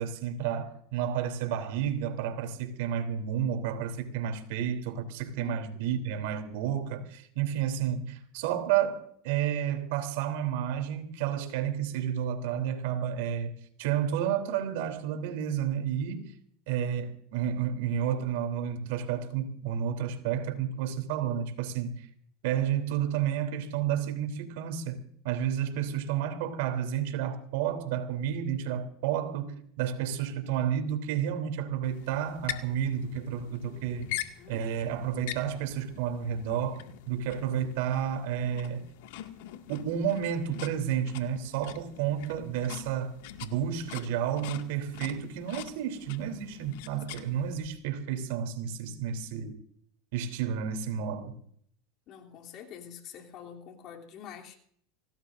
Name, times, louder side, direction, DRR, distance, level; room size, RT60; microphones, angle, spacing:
voice 1, 0.0-16.3 16.7-22.1 22.4-38.8 39.7-49.5 50.1-51.4, right 9 dB, 70° right, 3.3 m, -31 dB
voice 2, 5.4-6.3 33.6-34.6 47.1-47.4 52.1-54.6, left 8 dB, 45° left, 3.2 m, -47 dB
sound 1, 31.8-47.7, left 13 dB, 75° left, 2.0 m, -44 dB
26.0 x 18.5 x 2.6 m
supercardioid pair, 130°, 0 cm